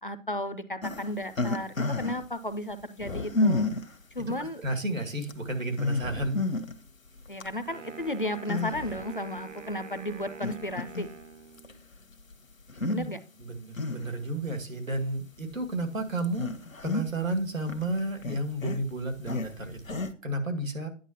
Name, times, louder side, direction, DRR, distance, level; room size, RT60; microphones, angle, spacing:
voice 1, 0.0-3.7 4.1-4.6 7.3-11.1 12.9-13.2, left 1 dB, 40° left, 0.5 m, -34 dB
sound 1, 0.8-2.3 3.0-3.9 4.6-4.7 5.2-5.3 5.7-6.7 7.2-7.5 8.4-9.1 9.6-9.7 10.4-11.2 11.6-11.7 12.7-13.0 13.4-14.3 14.9-15.0 15.6-15.8 16.2-17.3 17.6-20.1, left 2 dB, 85° left, 1.2 m, -30 dB
voice 2, 4.6-6.4 12.8-13.1 13.4-16.5 16.8-20.9, right 2 dB, 85° right, 2.1 m, -32 dB
Wind instrument woodwind instrument, 7.7-11.9, right 5 dB, 65° right, 0.9 m, -45 dB
10.0 x 6.3 x 2.9 m
figure-of-eight pair, 165°, 39 cm